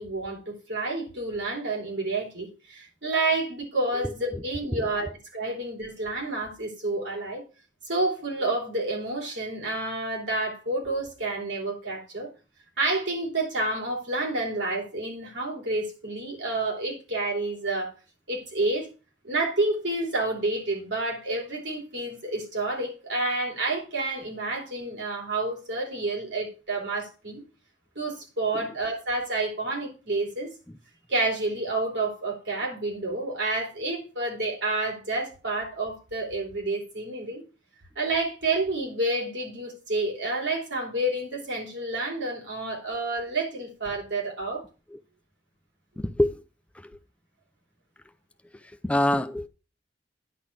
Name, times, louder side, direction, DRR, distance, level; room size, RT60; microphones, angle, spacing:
voice 1, 0.0-7.4 7.9-12.3 12.8-17.9 18.3-18.9 19.2-27.4 27.9-30.5 31.1-37.4 37.9-44.6, right 2 dB, 65° right, 3.2 m, -29 dB
voice 2, 46.0-46.4 46.8-47.0 48.6-49.5, left 1 dB, 5° left, 0.5 m, -26 dB
10.0 x 4.0 x 6.7 m
head